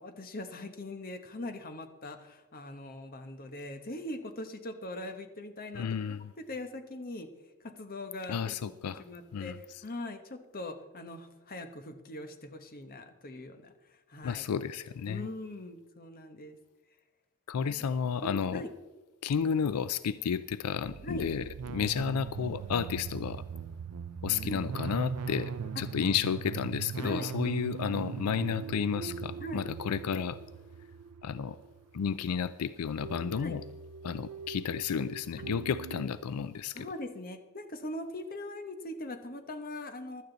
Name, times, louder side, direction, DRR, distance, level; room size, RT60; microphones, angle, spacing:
voice 1, 0.0-6.2 6.5-7.3 7.6-8.7 9.1-9.5 9.8-14.5 15.1-16.6 18.2-18.7 21.0-21.3 24.4-24.6 27.0-27.3 29.4-29.6 33.4-33.6 36.7-40.2, left 1 dB, 40° left, 8 dB, 1.1 m, -41 dB
voice 2, 5.7-6.3 8.3-9.0 9.3-9.8 14.2-15.3 17.5-18.6 19.2-23.4 24.2-30.4 31.2-31.6 31.9-33.6 34.0-36.9, left 7 dB, 85° left, 15 dB, 0.4 m, -32 dB
sound 1, 20.9-32.4 33.0-36.1, right 6 dB, 85° right, 0.4 m, -40 dB
16.0 x 12.0 x 4.0 m, 1.2 s
head